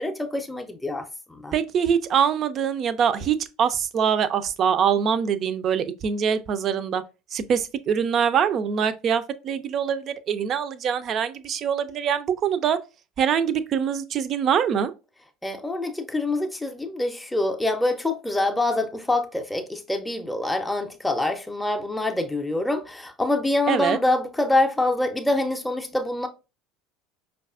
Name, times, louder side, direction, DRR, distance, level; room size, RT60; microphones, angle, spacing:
voice 1, 0.0-1.5 15.4-26.3, left 2 dB, 5° left, 0.6 m, -25 dB
voice 2, 1.5-7.0 7.3-12.8 13.2-14.9 23.7-24.0, right 7 dB, 45° right, 0.4 m, -24 dB
5.1 x 2.3 x 2.4 m
figure-of-eight pair, 70°, 0 cm